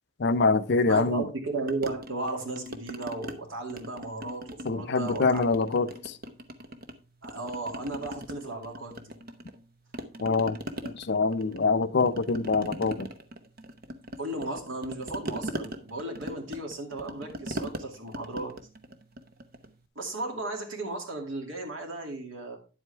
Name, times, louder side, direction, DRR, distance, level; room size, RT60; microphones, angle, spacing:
voice 1, 0.2-1.2 4.7-5.9 10.2-10.6 10.8-13.1, left 3 dB, 60° left, 0.6 m, -25 dB
voice 2, 0.9-5.7 7.2-9.1 14.2-18.5 20.0-22.6, right 2 dB, 90° right, 2.5 m, -35 dB
sound 1, 1.7-3.4 3.7-4.8 5.1-6.9 7.2-9.6 9.9-19.8, right 1 dB, 50° right, 0.9 m, -40 dB
10.0 x 7.8 x 3.4 m
head